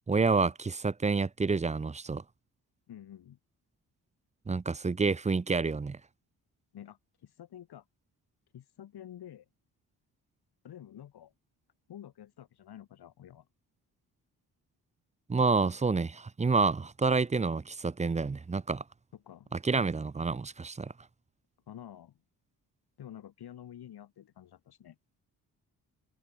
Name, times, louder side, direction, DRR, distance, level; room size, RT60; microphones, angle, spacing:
voice 1, 0.1-2.2 4.5-6.0 15.3-18.8 19.5-20.9, right 4 dB, 20° right, 0.6 m, -28 dB
voice 2, 2.9-3.4 6.7-7.9 8.5-9.4 10.6-11.3 11.9-13.5 19.1-19.5 21.7-22.1 23.0-25.0, left 10 dB, 80° left, 4.6 m, -49 dB
cardioid pair, 75°, 38 cm